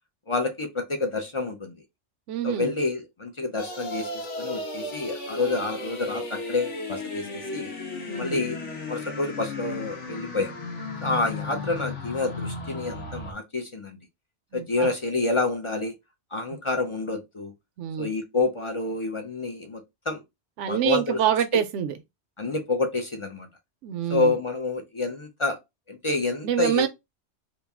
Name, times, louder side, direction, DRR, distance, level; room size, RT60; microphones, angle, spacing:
voice 1, 0.3-1.8 2.4-7.7 8.2-8.6 8.9-10.5 11.0-14.0 14.5-15.9 16.3-17.5 18.0-20.2 20.7-21.2 22.4-23.5 24.1-25.6 25.9-26.9, left 3 dB, 40° left, 0.4 m, -28 dB
voice 2, 2.3-2.7 8.1-8.4 14.5-14.9 17.8-18.1 20.6-22.0 23.8-24.3 26.4-26.9, right 10 dB, 85° right, 0.9 m, -26 dB
sound 1, 3.6-13.3, left 2 dB, 90° left, 1.3 m, -35 dB
3.0 x 2.6 x 3.4 m
omnidirectional pair, 1.2 m